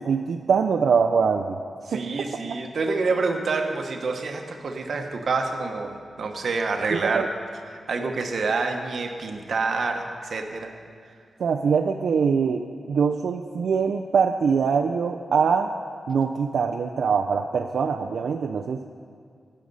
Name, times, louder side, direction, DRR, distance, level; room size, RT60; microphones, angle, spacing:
voice 1, 0.0-1.6 1.9-2.0 6.9-7.3 11.4-15.7 16.1-18.8, right 6 dB, 75° right, 4 dB, 0.4 m, -23 dB
voice 2, 1.8-7.3 7.7-10.7, right 4 dB, 55° right, 4 dB, 1.0 m, -27 dB
18.5 x 6.4 x 5.4 m, 2.2 s
wide cardioid pair, 180°, 0 cm